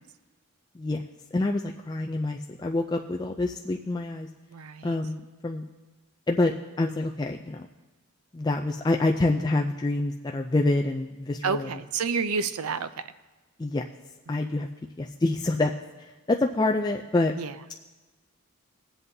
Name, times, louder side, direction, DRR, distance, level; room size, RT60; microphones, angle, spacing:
voice 1, 1.3-4.3 4.8-5.6 6.3-7.7 8.3-11.7 13.6-13.8 14.3-14.7 15.0-15.7 16.0-17.3, left 2 dB, 20° left, 2 dB, 0.3 m, -27 dB
voice 2, 4.5-5.0 11.4-13.1 17.4-17.6, right 5 dB, 80° right, 12 dB, 0.5 m, -29 dB
20.5 x 7.9 x 2.7 m, 1.2 s
head